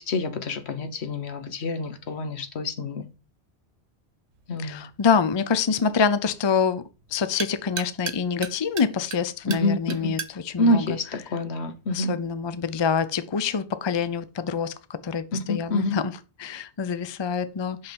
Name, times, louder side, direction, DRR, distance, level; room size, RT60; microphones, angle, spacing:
voice 1, 0.0-3.1 4.5-4.8 9.5-10.1 10.6-12.2 15.3-16.0, left 2 dB, 70° left, 1.3 m, -27 dB
sound 1, 4.3-11.9, right 7 dB, 80° right, 1.1 m, -40 dB
voice 2, 4.6-6.8 7.1-10.9 11.9-16.1 16.4-17.9, left 6 dB, 35° left, 0.4 m, -26 dB
6.0 x 5.6 x 5.2 m
omnidirectional pair, 1.1 m